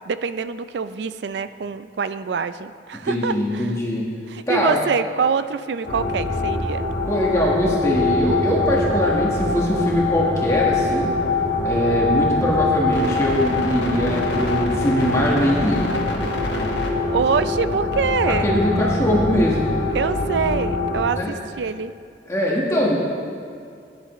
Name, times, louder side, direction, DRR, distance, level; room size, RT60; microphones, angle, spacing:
voice 1, 0.1-3.7 4.3-6.9 17.0-18.5 19.9-21.9, right 5 dB, 70° right, 13 dB, 0.4 m, -25 dB
voice 2, 3.0-4.0 4.5-4.8 7.1-11.1 11.6-15.9 18.3-19.7 21.1-21.3 22.3-22.9, equal, 15° left, -4 dB, 1.3 m, -22 dB
sound 1, 5.9-21.0, left 2 dB, 80° left, 1.5 m, -23 dB
16.0 x 10.0 x 3.1 m, 2.3 s
head